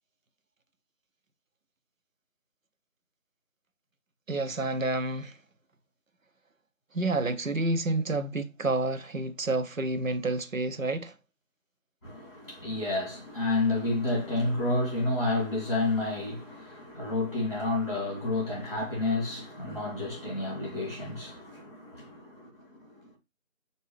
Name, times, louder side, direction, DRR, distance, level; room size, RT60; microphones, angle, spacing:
voice 1, 4.3-5.4 6.9-11.1, right 2 dB, 85° right, 0.7 m, -29 dB
voice 2, 12.0-23.2, left 2 dB, 20° left, 2.6 m, -30 dB
6.1 x 2.7 x 3.1 m
figure-of-eight pair, 170°, 39 cm